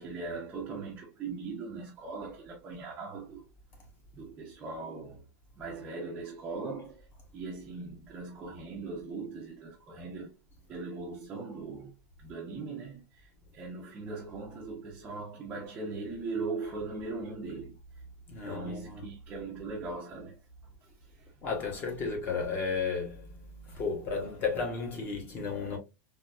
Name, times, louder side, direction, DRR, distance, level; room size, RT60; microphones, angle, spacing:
voice 1, 0.0-3.4 4.1-5.2 5.6-7.0 7.3-10.3 10.7-11.9 12.2-13.0 13.5-17.7 18.4-20.4, right 3 dB, 15° right, 0.6 m, -39 dB
voice 2, 18.3-19.0 21.4-23.3 23.7-25.8, left 5 dB, 25° left, 1.0 m, -33 dB
3.8 x 2.7 x 2.4 m
supercardioid pair, 175°, 9 cm